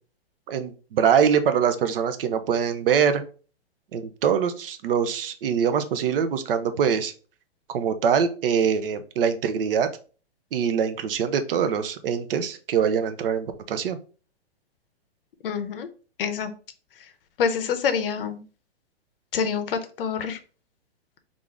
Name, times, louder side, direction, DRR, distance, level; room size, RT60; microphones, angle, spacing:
voice 1, 0.5-3.2 3.9-7.1 7.7-9.9 10.5-14.0, right 7 dB, 60° right, 10 dB, 0.6 m, -23 dB
voice 2, 15.4-15.9 16.2-16.5 17.4-18.4 19.3-20.4, left 6 dB, 60° left, 9 dB, 0.6 m, -26 dB
3.6 x 2.5 x 3.3 m, 0.37 s
hypercardioid pair, 155°, 32 cm